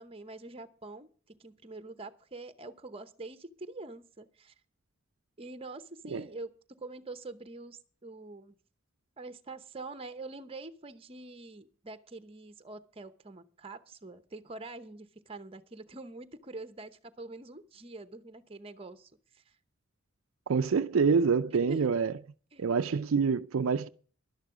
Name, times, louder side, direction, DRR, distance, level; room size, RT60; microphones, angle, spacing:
voice 1, 0.0-4.5 5.4-8.6 9.2-19.6 21.7-21.8 22.5-22.6, right 2 dB, 25° right, 0.9 m, -45 dB
voice 2, 20.5-22.1 22.6-23.9, right 5 dB, 70° right, 0.5 m, -26 dB
11.5 x 11.5 x 4.9 m
head